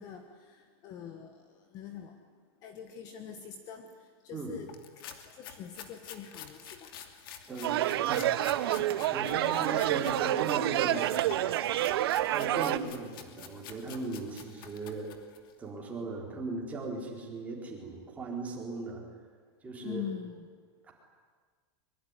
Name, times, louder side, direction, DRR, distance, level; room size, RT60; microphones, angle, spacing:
voice 1, 0.0-1.3 1.7-2.2 2.6-3.9 4.2-7.0 9.6-9.8 10.2-11.6 19.8-20.5, left 8 dB, 25° left, 7 dB, 1.4 m, -44 dB
sound 1, 4.7-10.2 10.5-15.5, left 8 dB, 60° left, 2.8 m, -48 dB
voice 2, 7.5-7.8 8.1-11.0 12.3-15.1 15.6-19.0 19.6-20.0 20.8-20.9, right 3 dB, 10° right, -1 dB, 4.1 m, -38 dB
sound 2, 7.6-12.8, right 13 dB, 65° right, 1.2 m, -28 dB
23.5 x 23.0 x 9.9 m, 1.5 s
supercardioid pair, 180°, 14 cm